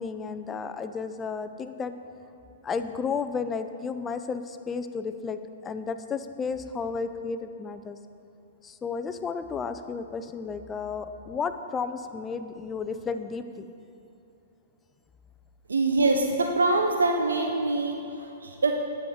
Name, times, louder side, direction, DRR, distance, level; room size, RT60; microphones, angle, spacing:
voice 1, 0.0-2.0 2.6-8.0 8.6-13.7, left 5 dB, 20° left, 9 dB, 0.5 m, -33 dB
voice 2, 15.7-18.7, right 2 dB, 85° right, 3 dB, 0.6 m, -24 dB
10.5 x 7.8 x 3.6 m, 2.8 s
hypercardioid pair, 115°, 0 cm